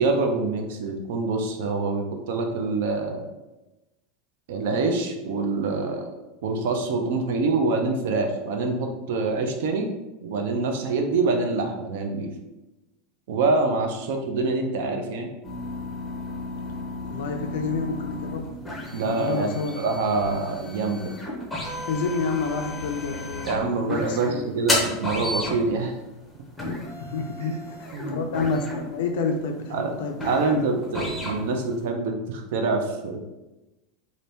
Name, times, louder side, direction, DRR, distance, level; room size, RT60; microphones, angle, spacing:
voice 1, 0.0-3.2 4.5-6.1 6.4-9.9 10.2-12.3 13.3-15.3 18.9-21.1 23.4-25.9 27.4-27.6 27.9-28.2 29.7-29.9 30.2-33.2, right 3 dB, 65° right, 4 dB, 0.5 m, -25 dB
sound 1, 15.4-31.9, left 1 dB, 5° left, 0.6 m, -33 dB
voice 2, 17.0-18.6 18.9-19.8 21.9-24.7 27.0-30.2 30.5-30.7, left 4 dB, 75° left, 4 dB, 0.4 m, -29 dB
2.8 x 2.6 x 3.3 m, 1.0 s
supercardioid pair, 175°, 0 cm